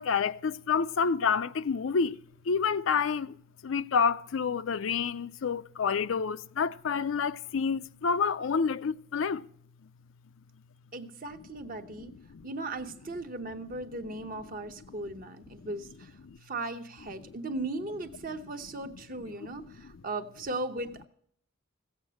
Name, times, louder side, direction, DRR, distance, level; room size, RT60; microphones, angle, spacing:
voice 1, 0.0-2.2 2.5-3.4 3.6-9.5 12.3-12.5 15.6-15.7 16.3-16.4, left 6 dB, 80° left, 0.5 m, -28 dB
voice 2, 10.9-12.1 12.4-21.0, right 2 dB, 45° right, 1.0 m, -37 dB
16.0 x 8.1 x 6.3 m
head